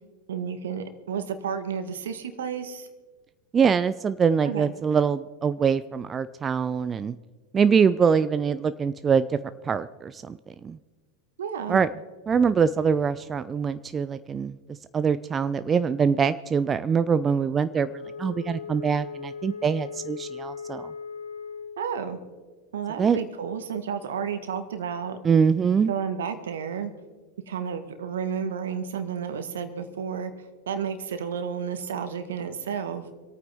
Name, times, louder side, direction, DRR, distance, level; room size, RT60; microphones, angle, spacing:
voice 1, 0.3-2.9 4.5-4.7 11.4-11.8 21.8-22.2 22.7-25.2 25.9-26.9 27.5-30.3 30.7-33.0, right 7 dB, 75° right, 9 dB, 1.5 m, -31 dB
voice 2, 3.5-7.2 7.5-9.4 9.6-10.8 11.7-11.9 12.3-14.6 14.9-20.9 23.0-23.2 25.2-25.9, right 6 dB, 25° right, 13 dB, 0.4 m, -23 dB
Wind instrument woodwind instrument, 17.7-21.8, left 6 dB, 85° left, 1.2 m, -38 dB
26.0 x 9.2 x 3.5 m, 1.4 s
hypercardioid pair, 90°, 0 cm